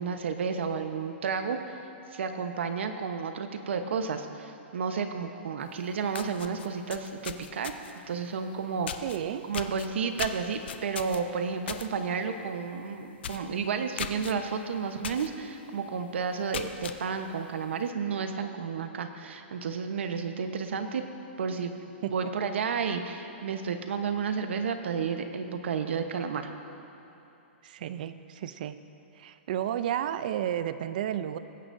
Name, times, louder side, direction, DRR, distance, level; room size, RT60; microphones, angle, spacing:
voice 1, 0.0-1.7 2.1-7.7 8.1-8.9 9.5-21.0 21.4-21.8 22.1-26.5, right 6 dB, 70° right, 7 dB, 1.0 m, -31 dB
sound 1, 5.7-5.8 6.1-8.0 8.9-9.2 9.5-11.9 12.2-12.5 12.8-12.9 13.2-13.5 14.0-14.3 15.0-15.3 15.7-15.8 16.3-17.0, left 9 dB, 60° left, 0.6 m, -37 dB
voice 2, 9.0-9.5 22.0-22.1 27.6-28.8 29.2-31.4, right 10 dB, 45° right, 12 dB, 0.5 m, -32 dB
21.5 x 9.9 x 2.7 m, 2.9 s
hypercardioid pair, 170°, 6 cm